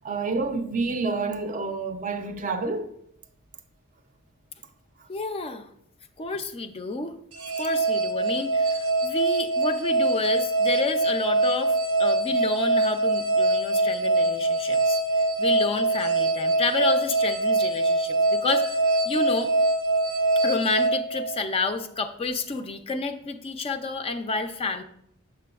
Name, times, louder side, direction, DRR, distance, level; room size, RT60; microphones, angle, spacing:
voice 1, 0.0-3.0 5.0-5.1, right 3 dB, 40° right, 0.5 m, -28 dB
voice 2, 5.1-5.7 6.2-7.1 7.6-18.8 19.0-19.5 20.4-24.8, left 3 dB, 25° left, 0.4 m, -30 dB
sound 1, 7.3-21.7, right 2 dB, 90° right, 0.7 m, -23 dB
7.5 x 6.6 x 2.3 m
head